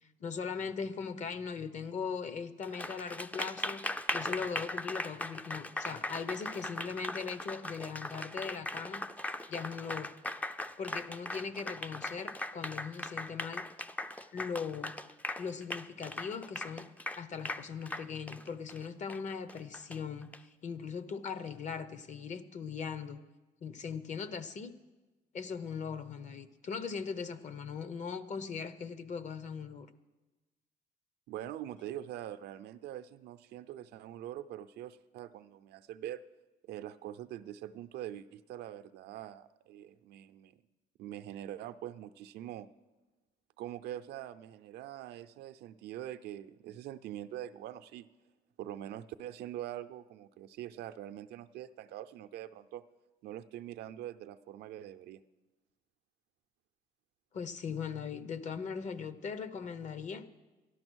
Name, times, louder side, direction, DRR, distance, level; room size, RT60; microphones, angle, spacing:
voice 1, 0.2-3.8 4.1-9.1 9.5-10.1 10.8-13.6 14.3-14.9 15.4-16.9 17.2-23.2 23.6-24.7 25.3-29.9 57.3-60.2, left 6 dB, 45° left, 13 dB, 0.9 m, -39 dB
Applause, 2.6-20.4, left 1 dB, 10° left, 0.4 m, -39 dB
voice 2, 31.3-36.2 36.7-40.6 41.0-42.7 43.6-48.1 48.6-52.8 53.2-55.2, right 12 dB, 75° right, 11 dB, 0.6 m, -44 dB
13.0 x 11.5 x 6.3 m, 1.2 s
cardioid pair, 110°, 17 cm